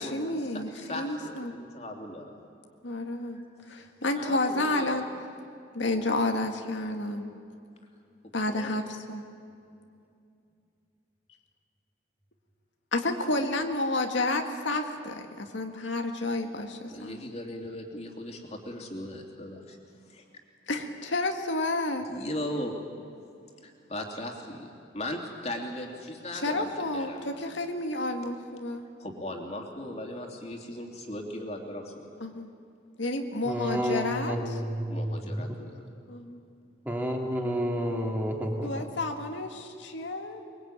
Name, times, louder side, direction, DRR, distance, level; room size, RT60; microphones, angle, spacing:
voice 1, 0.0-1.5 2.8-3.4 3.7-5.0 5.7-7.2 8.3-9.2 12.9-17.2 20.7-22.1 26.3-28.9 32.2-32.5 33.0-34.6 36.1-36.4 38.6-40.4, left 2 dB, 85° left, 4 dB, 1.8 m, -30 dB
voice 2, 0.5-2.4 3.3-3.4 4.1-5.0 8.5-8.7 16.9-19.8 20.1-20.2 22.1-22.7 23.6-27.7 29.0-32.1 34.9-35.8, left 1 dB, 35° left, 2 dB, 3.0 m, -38 dB
voice 3, 33.4-35.4 36.9-38.8, equal, 10° right, 0 dB, 2.5 m, -30 dB
23.5 x 22.5 x 8.9 m, 2.5 s
head